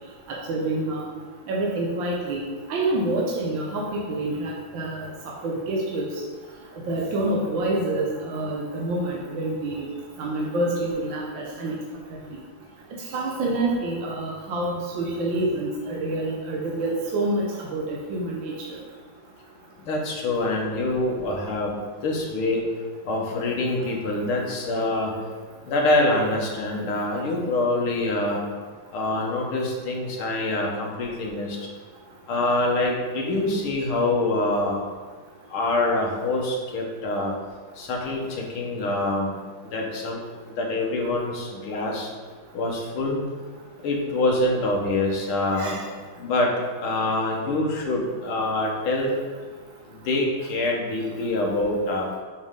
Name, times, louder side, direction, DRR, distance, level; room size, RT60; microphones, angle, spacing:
voice 1, 0.5-1.0 1.5-2.4 2.7-5.1 5.4-6.1 6.9-9.9 10.2-11.8 13.1-17.5 17.7-18.8 45.5-45.8, right 2 dB, 65° right, -3 dB, 1.6 m, -27 dB
voice 2, 19.9-21.7 22.0-22.6 23.0-25.1 25.6-28.4 28.9-31.6 32.3-34.8 35.5-37.3 37.8-39.3 39.6-40.2 40.5-42.1 42.5-43.2 43.8-45.7 46.2-46.5 46.8-49.1 50.1-52.1, left 2 dB, 80° left, -1 dB, 2.1 m, -25 dB
7.0 x 6.3 x 3.7 m, 1.5 s
omnidirectional pair, 2.3 m